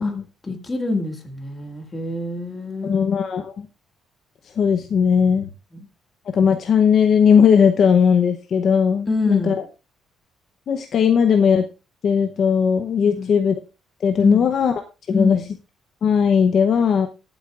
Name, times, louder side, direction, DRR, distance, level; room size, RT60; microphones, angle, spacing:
voice 1, 0.4-3.0 5.7-5.9 9.1-9.6 13.0-13.4 14.2-14.5 15.1-15.4, left 3 dB, 20° left, 2.0 m, -25 dB
voice 2, 2.8-3.7 4.6-5.5 6.3-9.6 10.7-11.6 12.0-13.5 14.0-14.7 15.1-15.4 16.0-17.1, left 7 dB, 45° left, 0.8 m, -17 dB
21.0 x 8.1 x 2.5 m
cardioid pair, 160°, 0 cm